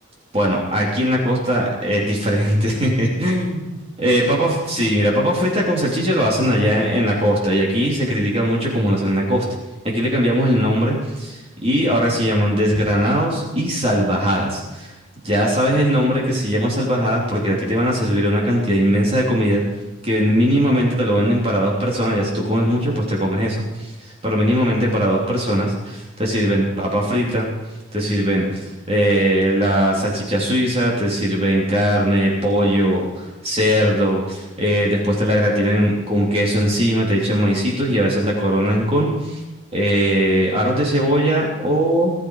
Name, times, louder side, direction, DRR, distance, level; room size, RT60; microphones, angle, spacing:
voice 1, 0.3-3.7 4.0-9.4 9.8-14.9 15.2-19.6 20.0-27.5 27.9-39.4 39.7-42.1, equal, 30° right, -3 dB, 3.5 m, -19 dB
20.0 x 13.0 x 4.9 m, 1.1 s
head